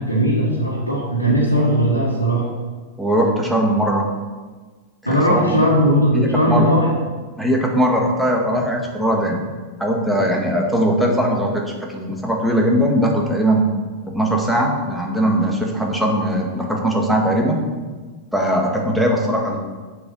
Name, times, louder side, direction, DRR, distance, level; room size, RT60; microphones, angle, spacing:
voice 1, 0.0-2.5 5.0-6.9, equal, 90° right, -6 dB, 1.7 m, -18 dB
voice 2, 3.0-4.1 5.0-5.7 6.1-6.7 7.4-9.4 9.8-13.6 14.1-17.6 18.3-19.6, equal, ahead, -1 dB, 1.8 m, -20 dB
7.5 x 7.3 x 5.4 m, 1.4 s
figure-of-eight pair, 90°, 0 cm